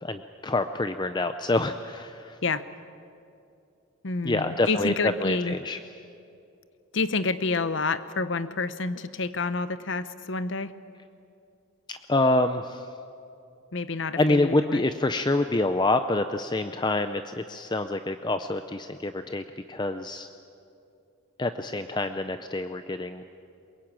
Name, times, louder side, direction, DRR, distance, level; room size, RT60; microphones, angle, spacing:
voice 1, 0.0-2.4 4.2-5.8 11.9-12.9 14.2-20.3 21.4-23.2, left 2 dB, 20° left, 9 dB, 0.5 m, -27 dB
voice 2, 4.0-5.5 6.9-10.7 13.7-14.8, left 3 dB, 60° left, 13 dB, 0.8 m, -28 dB
22.5 x 22.0 x 8.8 m, 2.6 s
head